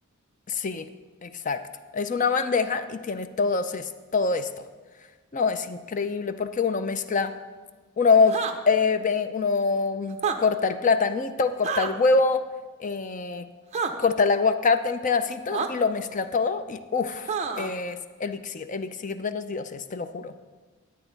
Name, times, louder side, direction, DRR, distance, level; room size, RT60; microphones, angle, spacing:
voice 1, 0.5-0.9 1.2-1.6 1.9-4.5 5.3-7.3 8.0-8.4 8.7-12.4 12.8-13.5 14.0-20.3, left 4 dB, 35° left, 11 dB, 0.4 m, -25 dB
sound 1, 8.3-8.6 10.1-10.4 11.6-11.9 13.7-13.9 15.5-15.7 17.3-17.7, right 5 dB, 30° right, 0.6 m, -27 dB
10.5 x 8.9 x 4.0 m, 1.3 s
head